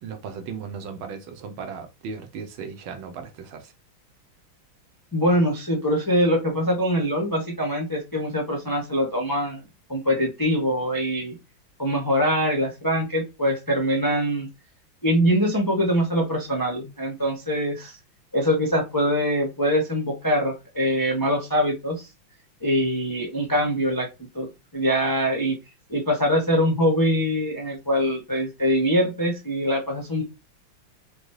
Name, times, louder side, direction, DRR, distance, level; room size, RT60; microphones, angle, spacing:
voice 1, 0.0-3.7, right 6 dB, 80° right, 1.6 m, -36 dB
voice 2, 5.1-9.6 9.9-11.3 11.8-14.5 15.0-18.0 18.3-22.1 22.6-24.1 24.3-25.6 25.9-30.2, equal, 30° left, 0.3 m, -23 dB
5.1 x 2.3 x 3.1 m
omnidirectional pair, 2.3 m